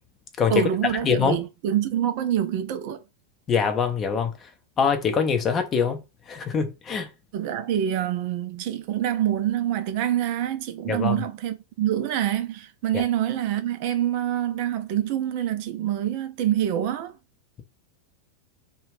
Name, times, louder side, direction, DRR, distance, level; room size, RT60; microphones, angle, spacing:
voice 1, 0.5-3.0 7.3-17.1, right 11 dB, 45° right, 0.4 m, -26 dB
voice 2, 1.0-1.4 3.5-4.3 4.8-6.0 6.3-7.1 10.9-11.2 12.9-13.0, left 6 dB, 25° left, 0.5 m, -23 dB
2.4 x 2.2 x 3.2 m
figure-of-eight pair, 90°, 0 cm